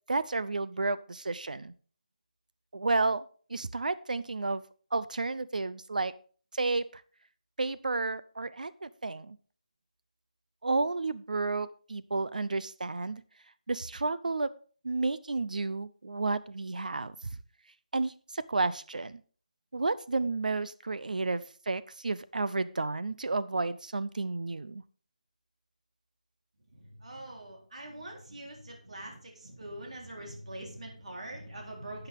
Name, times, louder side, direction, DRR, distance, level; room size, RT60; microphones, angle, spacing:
voice 1, 0.1-1.7 2.7-3.2 3.5-4.6 4.9-6.1 6.5-7.0 7.6-9.4 10.6-13.2 13.7-14.5 14.8-17.3 17.9-19.2 19.7-24.8, right 3 dB, 90° right, 15 dB, 0.7 m, -31 dB
voice 2, 26.7-32.1, right 1 dB, 55° right, 0 dB, 3.8 m, -44 dB
12.5 x 8.0 x 3.6 m, 0.42 s
hypercardioid pair, 180°, 4 cm